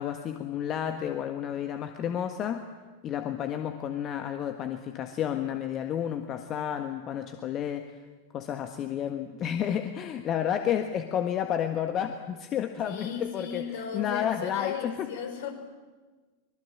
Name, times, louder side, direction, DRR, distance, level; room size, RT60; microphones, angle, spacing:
voice 1, 0.0-2.6 3.0-7.9 8.3-15.1, left 9 dB, 30° left, 7 dB, 1.5 m, -31 dB
voice 2, 12.8-15.5, left 7 dB, 55° left, 5 dB, 4.6 m, -36 dB
24.5 x 22.0 x 8.9 m, 1.3 s
figure-of-eight pair, 90°, 0 cm